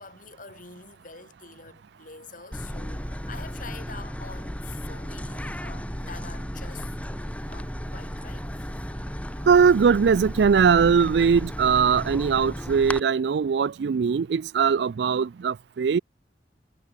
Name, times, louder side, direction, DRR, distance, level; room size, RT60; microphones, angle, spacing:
voice 1, 0.0-7.0 7.5-8.9, left 5 dB, 50° left, 3.9 m, -46 dB
sound 1, 2.5-13.0, equal, 10° left, 2.4 m, -34 dB
voice 2, 9.5-16.0, right 6 dB, 70° right, 0.4 m, -20 dB
head